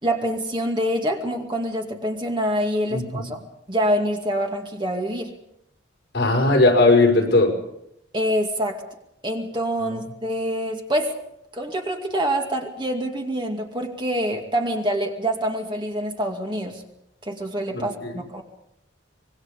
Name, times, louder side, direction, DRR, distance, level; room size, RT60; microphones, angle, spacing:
voice 1, 0.0-3.4 3.7-5.3 8.1-8.8 9.2-11.1 11.5-16.8 17.2-18.4, equal, 25° right, 2 dB, 2.3 m, -26 dB
voice 2, 2.9-3.3 6.1-7.5 9.8-9.9 17.7-18.2, left 2 dB, 60° left, 1 dB, 5.6 m, -18 dB
26.0 x 21.5 x 5.3 m, 0.79 s
head